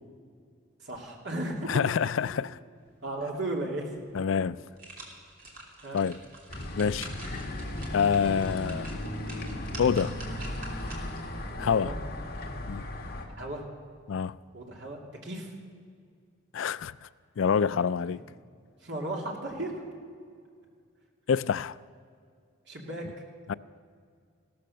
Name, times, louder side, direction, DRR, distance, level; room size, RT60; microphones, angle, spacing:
voice 1, 0.8-1.7 3.0-3.9 5.8-6.0 11.5-12.0 13.4-13.6 14.5-15.5 18.8-19.9 22.7-23.1, right 1 dB, 60° right, 2.8 m, -35 dB
voice 2, 1.7-2.6 4.1-4.6 5.9-6.2 6.8-7.1 7.9-9.0 9.8-10.2 11.6-11.9 12.7-12.8 14.1-14.4 16.5-17.1 17.4-18.2 21.3-21.8 23.5-23.6, left 6 dB, 80° left, 0.4 m, -26 dB
sound 1, 4.4-11.3 11.7-11.8, right 2 dB, 45° right, 3.1 m, -47 dB
sound 2, 6.5-13.3, left 1 dB, 50° left, 2.0 m, -36 dB
16.5 x 13.0 x 6.5 m
head